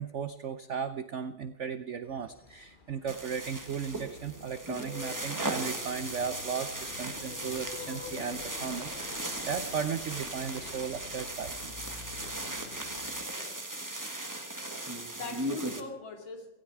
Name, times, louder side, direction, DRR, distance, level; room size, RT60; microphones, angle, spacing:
voice 1, 0.0-11.7, right 6 dB, 90° right, 11 dB, 0.6 m, -36 dB
sound 1, 2.0-13.2, left 4 dB, 35° left, 1.0 m, -48 dB
sound 2, 3.1-15.8, right 1 dB, 10° right, 1.1 m, -38 dB
voice 2, 13.2-13.7 14.7-16.5, left 4 dB, 85° left, 3 dB, 3.2 m, -43 dB
17.5 x 16.0 x 4.7 m, 0.93 s
omnidirectional pair, 2.1 m